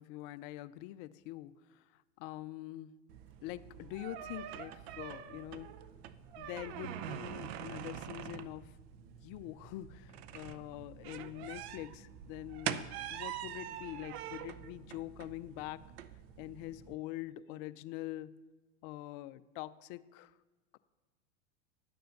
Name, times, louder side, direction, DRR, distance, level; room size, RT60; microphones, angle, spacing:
voice 1, 0.0-1.8 2.2-2.9 3.4-5.8 6.4-8.7 9.2-15.9 16.4-18.3 18.8-20.3, left 16 dB, 45° left, 14 dB, 0.5 m, -44 dB
sound 1, 3.1-16.9, right 10 dB, 55° right, 0.7 m, -45 dB
10.5 x 6.7 x 6.5 m, 1.2 s
hypercardioid pair, 100°, 37 cm